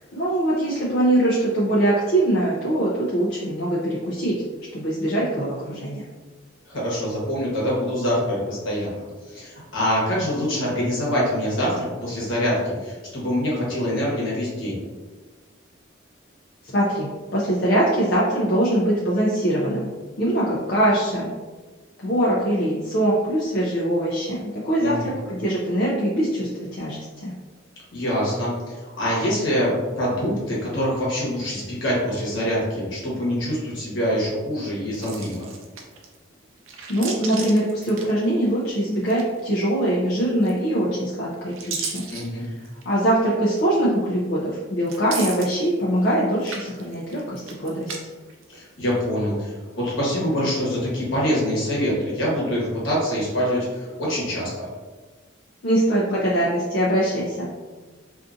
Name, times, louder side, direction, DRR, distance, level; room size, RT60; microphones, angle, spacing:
voice 1, 0.1-4.4 4.7-6.0 16.7-19.9 20.2-21.3 22.0-27.3 36.9-42.0 42.3-42.5 42.8-47.9 55.6-57.5, right 1 dB, 55° left, -6 dB, 0.4 m, -22 dB
voice 2, 6.7-14.8 24.8-25.1 27.9-35.4 42.1-42.4 48.5-54.7, equal, 75° left, -6 dB, 1.1 m, -25 dB
sound 1, 34.9-36.2 36.6-38.6 38.9-39.6 40.4-40.9 41.3-42.9 43.5-43.6 44.8-46.1 46.4-48.0 48.3-49.0, right 5 dB, 85° right, 0.5 m, -35 dB
2.5 x 2.4 x 2.5 m, 1.3 s
head